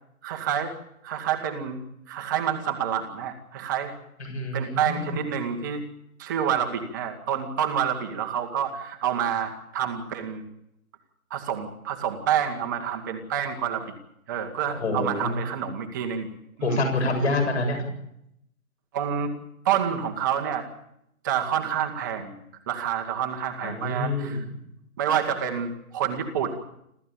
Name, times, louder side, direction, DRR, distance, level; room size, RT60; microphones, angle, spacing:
voice 1, 0.2-0.7 1.0-1.8 2.1-3.9 4.5-5.8 6.2-10.4 11.3-13.9 14.3-16.3 16.6-16.8 18.9-19.3 19.6-20.7 21.2-24.4 25.0-26.6, right 8 dB, 15° right, 3 dB, 1.3 m, -28 dB
voice 2, 4.2-5.1 14.7-15.4 16.6-17.9 23.6-24.4, left 2 dB, 50° left, 5 dB, 7.7 m, -27 dB
27.0 x 14.5 x 8.8 m, 0.79 s
figure-of-eight pair, 160°, 43 cm